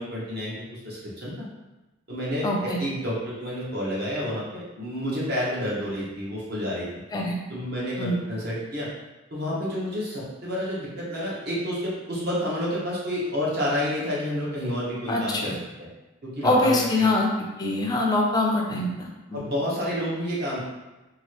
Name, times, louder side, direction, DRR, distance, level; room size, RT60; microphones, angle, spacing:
voice 1, 0.0-1.5 2.1-6.9 7.5-8.9 9.3-15.5 15.8-15.9 16.2-17.1 19.3-20.6, equal, 50° right, -6 dB, 1.0 m, -29 dB
voice 2, 2.4-2.8 7.1-7.4 8.0-8.2 15.1-15.6 16.4-17.3 17.6-19.4, left 2 dB, 20° left, 0 dB, 0.4 m, -24 dB
2.9 x 2.4 x 3.0 m, 1.1 s
head